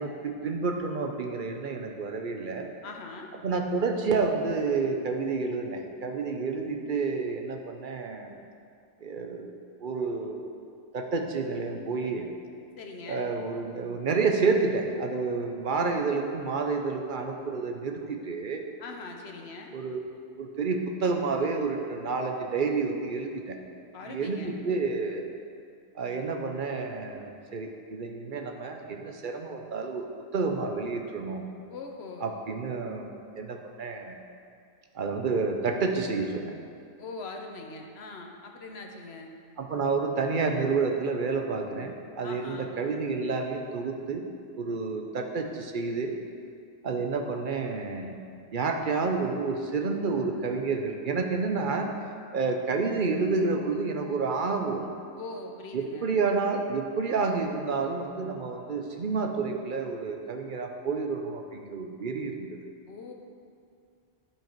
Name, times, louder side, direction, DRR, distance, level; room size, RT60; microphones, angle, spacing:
voice 1, 0.0-2.7 3.4-8.3 9.0-9.5 9.8-10.5 10.9-12.3 13.1-18.6 19.7-20.0 20.4-23.6 24.0-25.3 25.9-30.1 30.3-31.4 32.2-34.2 34.9-36.5 39.6-44.2 44.6-46.1 46.8-48.2 48.5-51.9 52.3-54.9 55.7-62.6, right 4 dB, 55° right, 3 dB, 0.8 m, -29 dB
voice 2, 2.8-3.3 12.8-13.3 18.8-19.7 23.9-24.5 31.7-32.3 37.0-39.3 42.2-42.7 55.2-56.1 62.9-63.1, left 3 dB, 85° left, 3 dB, 1.1 m, -41 dB
12.0 x 4.8 x 4.5 m, 2.4 s
omnidirectional pair, 1.1 m